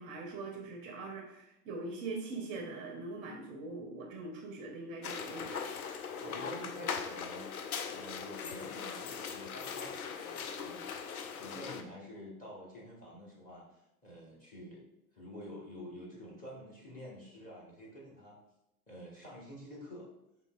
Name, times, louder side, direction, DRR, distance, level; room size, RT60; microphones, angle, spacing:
voice 1, 0.0-5.7, right 3 dB, 25° right, 1 dB, 0.5 m, -42 dB
sound 1, 5.0-11.8, left 6 dB, 65° left, 0.5 m, -40 dB
voice 2, 6.2-7.5 7.9-10.9 11.3-14.8 15.1-18.4 18.9-20.1, equal, 20° left, -4 dB, 1.0 m, -48 dB
5.2 x 2.8 x 2.3 m, 0.87 s
figure-of-eight pair, 95°, 46 cm